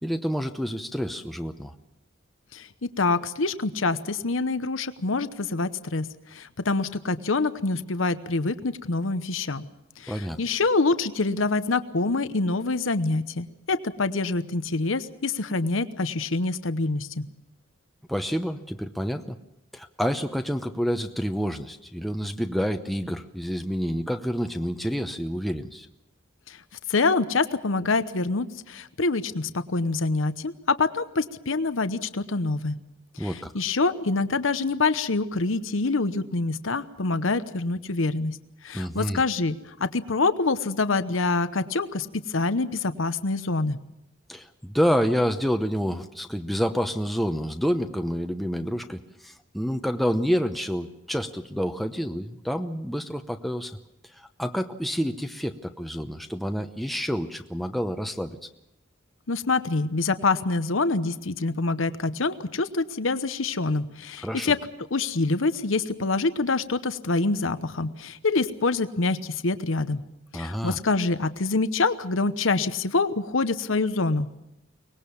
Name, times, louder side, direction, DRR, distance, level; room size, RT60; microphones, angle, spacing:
voice 1, 0.0-1.7 10.1-10.4 18.1-19.4 19.7-25.9 33.2-33.5 38.7-39.2 44.3-53.7 54.1-58.4 64.2-64.5 70.3-70.8, equal, ahead, 5 dB, 0.9 m, -28 dB
voice 2, 2.5-9.6 10.0-17.3 26.5-26.6 26.9-32.7 33.2-38.4 38.6-43.8 59.3-64.6 64.9-70.0 70.3-74.3, left 3 dB, 85° left, 12 dB, 1.0 m, -26 dB
24.0 x 20.0 x 7.1 m, 0.87 s
head